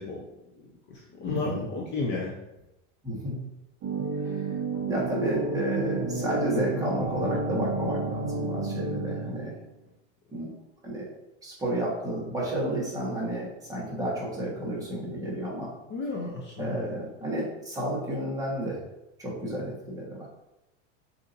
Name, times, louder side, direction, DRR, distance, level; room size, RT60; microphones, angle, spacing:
voice 1, 0.6-2.3 15.9-16.9 17.3-17.4, left 3 dB, 30° left, -2 dB, 0.7 m, -33 dB
voice 2, 1.3-1.7 3.0-3.4 4.1-4.6 4.9-9.6 10.3-11.1 11.4-15.7 16.6-18.8 19.2-20.3, right 1 dB, 10° right, -6 dB, 1.4 m, -31 dB
sound 1, 3.8-9.7, right 3 dB, 30° right, 0.8 m, -31 dB
6.4 x 2.8 x 2.7 m, 0.91 s
supercardioid pair, 150°, 36 cm